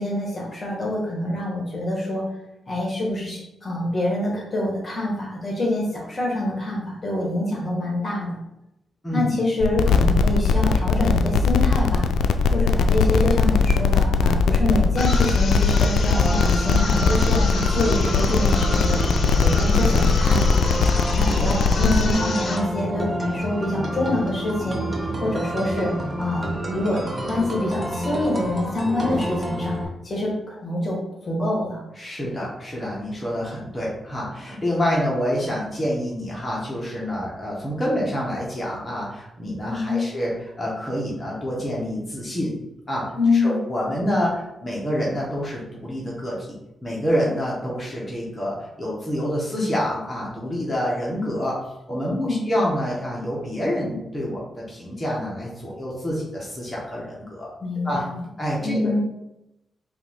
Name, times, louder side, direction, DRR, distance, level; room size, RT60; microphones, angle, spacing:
voice 1, 0.0-2.2 2.7-8.4 9.1-12.1 12.5-19.0 19.4-20.6 21.1-24.8 25.2-25.9 26.2-29.8 30.0-31.8 39.7-40.1 43.2-43.6 52.1-52.4 57.6-58.2 58.6-59.0, left 1 dB, 35° left, -3 dB, 1.7 m, -26 dB
sound 1, 9.6-22.1, left 5 dB, 85° left, 0.3 m, -19 dB
sound 2, 15.0-22.7, left 3 dB, 60° left, 0.7 m, -31 dB
sound 3, 16.1-29.9, right 1 dB, 30° right, 1.0 m, -29 dB
voice 2, 32.0-40.3 40.6-42.5 42.9-46.5 46.8-51.6 51.9-57.5 57.8-58.0 58.4-59.0, equal, 20° left, -6 dB, 1.6 m, -27 dB
4.7 x 2.9 x 3.8 m, 0.87 s
cardioid pair, 70°, 0 cm